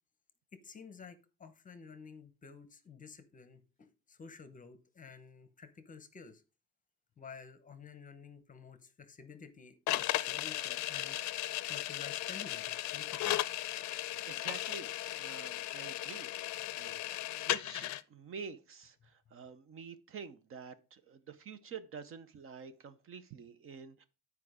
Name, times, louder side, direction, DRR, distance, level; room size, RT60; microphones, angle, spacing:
voice 1, 0.5-6.4 7.2-11.2 11.7-13.4 16.9-17.0, left 5 dB, 25° left, 11 dB, 0.8 m, -52 dB
sound 1, 9.9-18.0, left 15 dB, 55° left, 0.5 m, -36 dB
voice 2, 14.3-14.9 15.2-17.0 17.3-24.0, right 6 dB, 40° right, 12 dB, 0.6 m, -48 dB
10.0 x 4.8 x 4.8 m, 0.31 s
cardioid pair, 175°, 34 cm